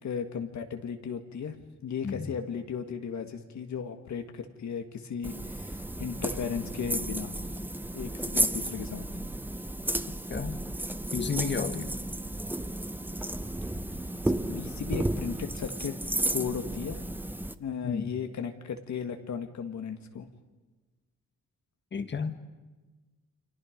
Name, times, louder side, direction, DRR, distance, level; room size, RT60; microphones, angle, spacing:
voice 1, 0.0-1.6 1.8-7.3 7.9-9.1 14.2-16.0 16.3-17.0 17.6-20.3, left 7 dB, 65° left, 6 dB, 1.7 m, -36 dB
sound 1, 5.2-17.5, right 1 dB, 5° right, 0.7 m, -33 dB
voice 2, 11.1-11.9 14.5-14.7 17.8-18.1 21.9-22.4, left 5 dB, 35° left, 9 dB, 1.5 m, -32 dB
29.5 x 26.5 x 5.2 m, 1.2 s
wide cardioid pair, 155°, 31 cm